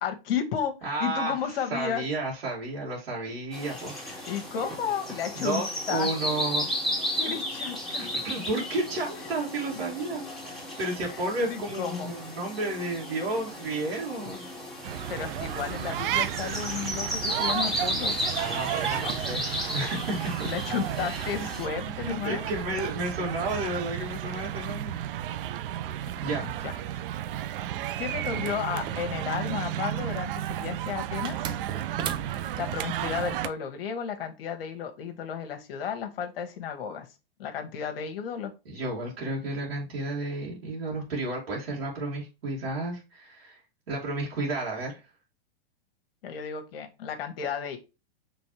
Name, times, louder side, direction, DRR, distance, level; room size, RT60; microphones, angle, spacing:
voice 1, 0.0-0.7 1.0-2.0 4.2-5.6 5.9-6.1 7.1-8.1 9.2-9.3 11.0-12.2 15.1-18.2 20.4-22.5 26.6-26.8 28.0-31.6 32.3-37.1 37.4-38.5 46.2-47.8, left 7 dB, 70° left, 6 dB, 1.1 m, -33 dB
voice 2, 0.8-1.4 1.7-4.2 5.4-6.7 8.2-14.4 18.4-19.5 19.7-20.5 21.0-21.5 21.9-25.0 26.2-26.5 38.7-43.6 43.9-45.0, right 2 dB, 80° right, -4 dB, 2.2 m, -32 dB
sound 1, 3.5-21.7, left 1 dB, ahead, 1.7 m, -34 dB
sound 2, 14.8-33.5, right 11 dB, 60° right, 0.6 m, -33 dB
sound 3, 28.2-29.7 31.3-32.7, right 8 dB, 15° right, 0.3 m, -37 dB
5.3 x 3.3 x 3.0 m, 0.28 s
hypercardioid pair, 125°, 30 cm